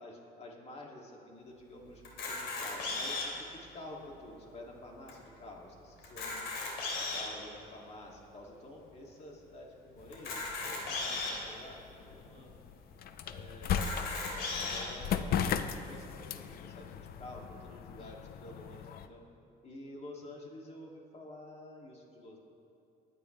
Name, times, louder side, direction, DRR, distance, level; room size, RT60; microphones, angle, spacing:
voice 1, 0.0-6.4 7.0-12.6 13.2-16.9 17.2-19.2 19.6-22.4, left 1 dB, 40° left, -1 dB, 2.7 m, -50 dB
Camera, 2.0-3.4 4.1-4.2 4.4-4.5 5.1-5.2 6.0-7.4 8.0-8.1 10.1-11.3 12.1-12.2 12.4-12.5 13.6-14.8, left 3 dB, 80° left, 3.2 m, -36 dB
sound 1, 10.0-19.1, left 8 dB, 60° left, 0.7 m, -38 dB
23.0 x 9.5 x 3.4 m, 2.8 s
cardioid pair, 110°, 17 cm